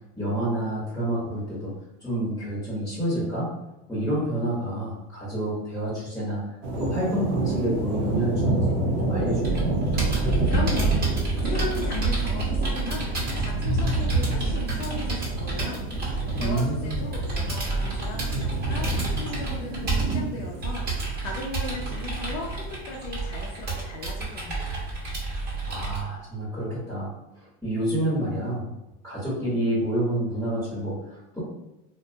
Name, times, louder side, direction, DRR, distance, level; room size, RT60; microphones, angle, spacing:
voice 1, 0.2-1.7 2.0-3.5 3.9-6.4 6.8-8.7 9.0-9.7 16.3-17.0 25.7-27.1 27.4-28.7 29.0-31.4, right 1 dB, 5° left, -9 dB, 0.8 m, -28 dB
sound 1, 6.6-22.7, right 2 dB, 90° right, 0.7 m, -29 dB
Computer keyboard, 9.4-26.0, right 3 dB, 25° right, 1.0 m, -29 dB
voice 2, 10.2-15.8 16.4-24.8, left 3 dB, 45° left, -1 dB, 0.4 m, -37 dB
2.5 x 2.1 x 2.6 m, 0.97 s
supercardioid pair, 135°, 36 cm